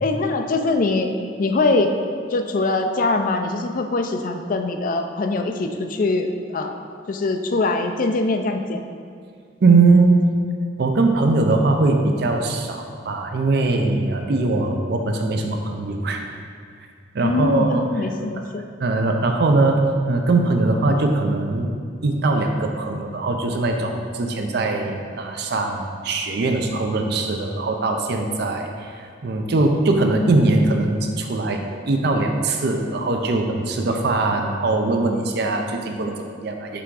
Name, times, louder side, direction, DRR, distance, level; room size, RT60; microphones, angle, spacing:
voice 1, 0.0-1.1 1.4-1.9 2.3-6.7 7.1-8.8 17.2-18.6, left 3 dB, 45° left, 6 dB, 0.4 m, -22 dB
voice 2, 9.6-10.3 10.8-16.3 17.1-17.9 18.8-19.8 20.1-21.7 22.0-36.8, right 3 dB, 60° right, 3 dB, 0.5 m, -21 dB
5.9 x 3.5 x 4.8 m, 2.2 s
head